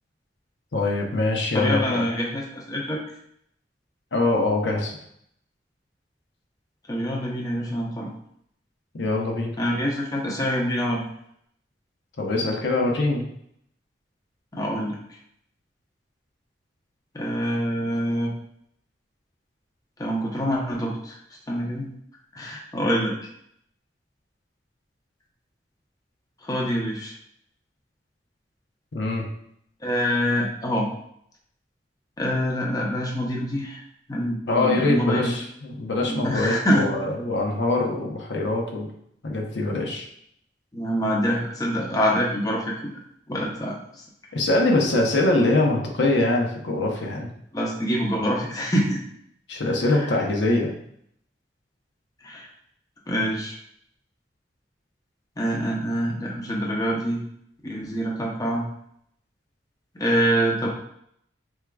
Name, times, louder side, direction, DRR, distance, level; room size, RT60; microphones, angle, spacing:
voice 1, 0.7-2.0 4.1-5.0 8.9-9.6 12.2-13.2 28.9-29.3 34.5-38.9 39.2-40.1 44.3-47.3 49.5-50.7, left 2 dB, 75° left, 0 dB, 0.8 m, -23 dB
voice 2, 1.5-3.0 6.9-8.1 9.6-11.0 14.5-15.0 17.1-18.3 20.0-21.2 21.5-21.9 22.3-23.1 26.4-27.1 29.8-30.9 32.2-33.8 34.1-35.3 36.1-36.9 40.7-43.0 43.3-43.8 47.5-49.0 49.9-50.1 52.2-52.5 53.1-53.6 55.4-57.2 57.6-58.6 59.9-60.7, equal, 20° left, -2 dB, 0.7 m, -25 dB
4.7 x 3.6 x 2.3 m, 0.70 s
head